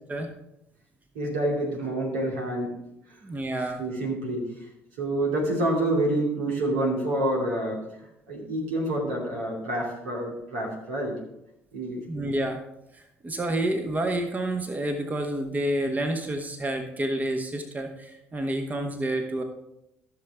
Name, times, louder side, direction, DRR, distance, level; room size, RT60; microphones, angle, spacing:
voice 1, 1.1-2.8 3.8-4.5 5.0-7.8 8.3-11.2 11.7-12.0, right 1 dB, 75° right, -2 dB, 2.6 m, -27 dB
voice 2, 3.2-3.8 5.3-5.4 12.1-12.6 12.9-19.4, right 1 dB, 25° right, 5 dB, 1.4 m, -29 dB
14.0 x 6.7 x 3.6 m, 0.83 s
hypercardioid pair, 55°, 6 cm